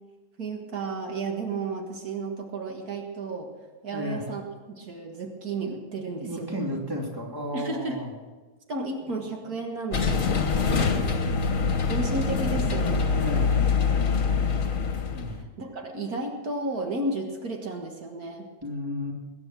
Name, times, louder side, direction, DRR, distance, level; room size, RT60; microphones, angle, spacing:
voice 1, 0.4-3.5 3.8-4.4 4.7-6.6 7.5-8.0 8.7-10.2 11.9-13.2 14.3-14.9 15.3-18.5, right 2 dB, 70° right, 2 dB, 2.1 m, -33 dB
voice 2, 3.9-4.2 6.2-8.1 10.5-11.4 13.1-13.6 15.1-15.4 18.6-19.1, left 1 dB, 15° right, -1 dB, 2.9 m, -33 dB
sound 1, 9.9-15.4, left 5 dB, 60° left, 1.8 m, -24 dB
21.5 x 9.8 x 6.1 m, 1.3 s
omnidirectional pair, 1.7 m